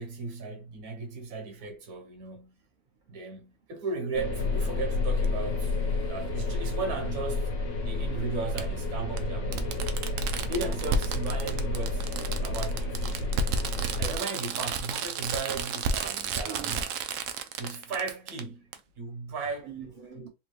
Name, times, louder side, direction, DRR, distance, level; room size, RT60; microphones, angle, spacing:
voice 1, 0.0-2.6 3.1-5.7 6.1-7.5 7.8-9.7 10.5-12.1 12.4-13.3 14.0-16.9 17.6-18.6 19.0-19.7, right 4 dB, 90° right, 1.6 m, -36 dB
sound 1, 4.1-14.2, left 2 dB, 65° left, 1.5 m, -30 dB
Fireworks, 5.2-5.3 6.9-7.0 8.6-8.7 9.2-9.3 9.5-18.4 18.7-18.8, right 5 dB, 70° right, 0.9 m, -32 dB
voice 2, 9.5-10.2 12.8-13.3 13.9-14.3 16.4-16.8 19.6-20.3, right 8 dB, 35° right, 1.5 m, -46 dB
4.2 x 2.5 x 3.2 m
omnidirectional pair, 1.5 m